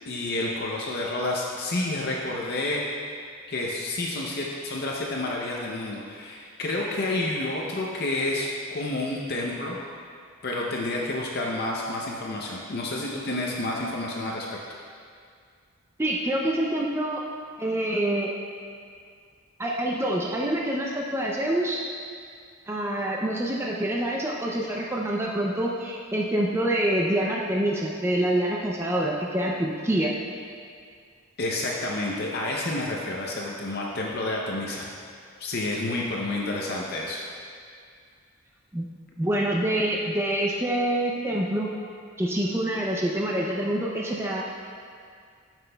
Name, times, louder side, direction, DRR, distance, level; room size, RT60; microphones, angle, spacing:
voice 1, 0.0-2.8 3.5-8.5 8.7-9.8 10.4-14.5 31.4-34.9 35.4-37.2, left 2 dB, 45° left, -2 dB, 0.6 m, -29 dB
voice 2, 16.0-17.2 17.6-18.3 19.6-21.8 22.7-30.1 38.7-38.9 39.2-41.7 42.2-44.4, right 1 dB, 10° right, -2 dB, 0.4 m, -26 dB
12.5 x 6.0 x 2.2 m, 2.2 s
head